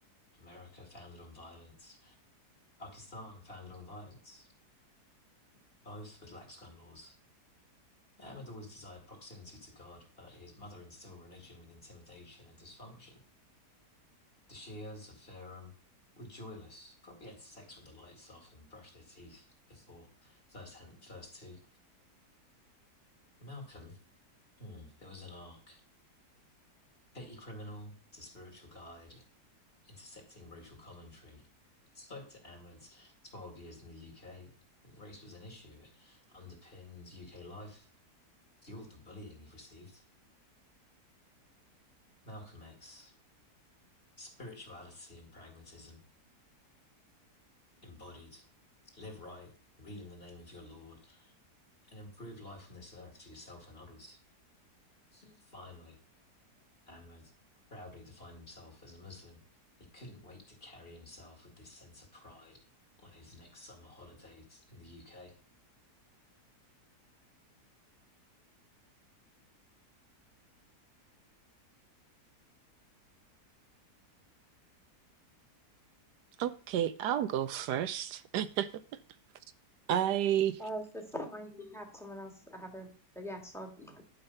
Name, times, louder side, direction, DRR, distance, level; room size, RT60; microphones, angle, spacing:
voice 1, 0.3-2.1 2.8-4.5 5.8-7.2 8.2-13.2 14.5-15.7 16.2-21.6 23.4-24.0 24.6-25.8 27.1-29.2 29.8-31.4 31.9-34.5 34.8-37.9 38.6-40.0 42.2-43.1 44.2-46.0 47.8-48.5 48.8-49.5 49.8-51.3 51.9-54.2 55.1-56.0 56.9-57.3 57.7-59.4 59.8-62.6 63.0-65.3, left 1 dB, 35° left, 2.5 m, -50 dB
voice 2, 76.4-78.7 79.9-80.6, right 10 dB, 80° right, 1.2 m, -31 dB
voice 3, 80.6-84.0, equal, ahead, 1.6 m, -43 dB
11.5 x 5.2 x 5.5 m
omnidirectional pair, 1.8 m